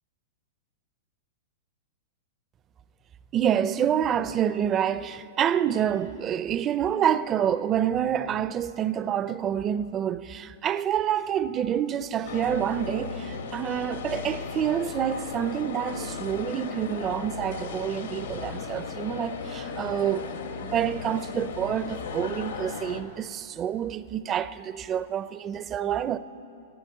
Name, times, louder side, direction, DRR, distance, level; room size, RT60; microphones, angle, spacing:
voice 1, 3.3-20.3 20.6-26.2, right 9 dB, 20° right, 0.4 m, -27 dB
sound 1, 12.2-23.0, left 5 dB, 80° left, 1.5 m, -36 dB
13.0 x 11.5 x 9.2 m
hypercardioid pair, 150°, 0 cm